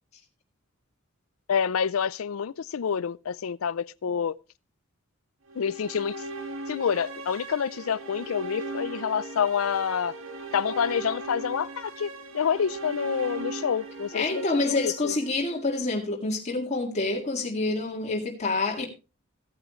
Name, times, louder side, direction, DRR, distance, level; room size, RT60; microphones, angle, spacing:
voice 1, 1.5-4.4 5.6-6.1 6.7-10.1 10.5-15.1, left 7 dB, 85° left, 0.5 m, -28 dB
sound 1, 5.5-15.7, right 2 dB, 80° right, 2.1 m, -38 dB
voice 2, 14.1-18.9, left 2 dB, 35° left, 2.1 m, -27 dB
16.0 x 8.9 x 3.0 m
head